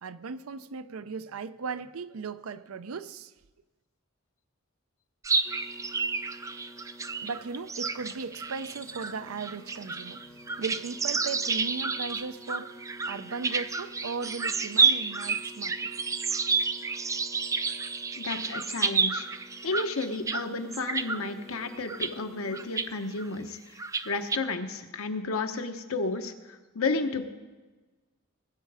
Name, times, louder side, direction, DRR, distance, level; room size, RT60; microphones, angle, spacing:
voice 1, 0.0-3.3 7.2-12.8 13.1-15.9, right 5 dB, 80° right, 0.5 m, -37 dB
sound 1, 5.2-20.4 20.7-21.2 21.8-22.1 22.5-22.9 23.2-23.3 23.8-24.4, right 5 dB, 15° right, 0.3 m, -30 dB
sound 2, 5.4-22.8, equal, 5° left, 0.7 m, -51 dB
voice 2, 18.2-19.3 19.6-23.6 24.0-27.3, left 3 dB, 80° left, 1.0 m, -32 dB
19.0 x 8.1 x 4.8 m
head